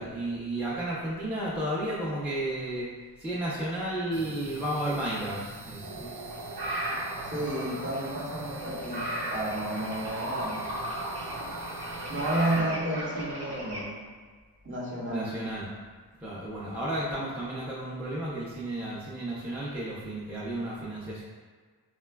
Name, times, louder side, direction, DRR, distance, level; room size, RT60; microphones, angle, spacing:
voice 1, 0.0-2.9 3.2-6.1 15.1-15.7 16.2-21.2, right 1 dB, 5° right, -8 dB, 0.6 m, -33 dB
sound 1, 4.1-12.6, right 4 dB, 90° right, 0.5 m, -45 dB
sound 2, 5.8-13.8, right 1 dB, 60° right, 0.9 m, -36 dB
voice 2, 7.2-10.6 12.1-13.9 14.6-15.3, right 1 dB, 25° right, -5 dB, 0.9 m, -31 dB
4.2 x 2.2 x 2.2 m, 1.5 s
cardioid pair, 55°, 44 cm